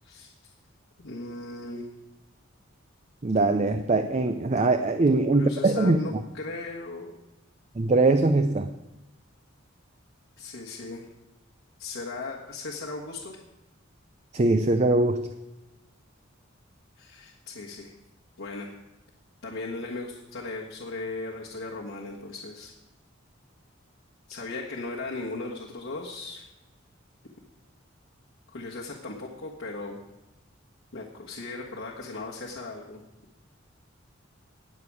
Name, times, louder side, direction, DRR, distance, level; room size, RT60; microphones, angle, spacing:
voice 1, 1.0-1.8 5.3-7.1 10.4-11.1 11.8-13.4 17.0-17.9 18.4-18.7 19.4-22.7 24.3-26.5 28.5-30.0 30.9-33.0, left 3 dB, 80° left, -4 dB, 1.6 m, -37 dB
voice 2, 3.2-6.0 7.8-8.7 14.3-15.3, right 2 dB, 35° right, 8 dB, 0.5 m, -22 dB
19.0 x 6.9 x 4.8 m, 1.0 s
head